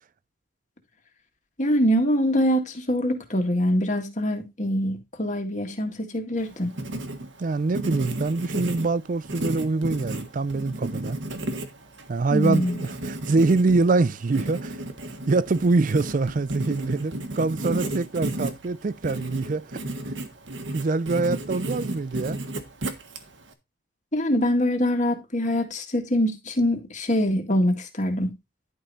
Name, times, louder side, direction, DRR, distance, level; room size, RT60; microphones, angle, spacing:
voice 1, 1.6-6.7 12.3-12.8 24.1-28.3, equal, 40° left, 2.0 m, -24 dB
Writing, 6.4-23.5, right 1 dB, 70° right, 1.5 m, -33 dB
voice 2, 7.4-11.2 12.1-14.8 15.3-19.7 20.7-22.4, right 3 dB, 40° right, 0.4 m, -24 dB
11.0 x 5.4 x 4.2 m
head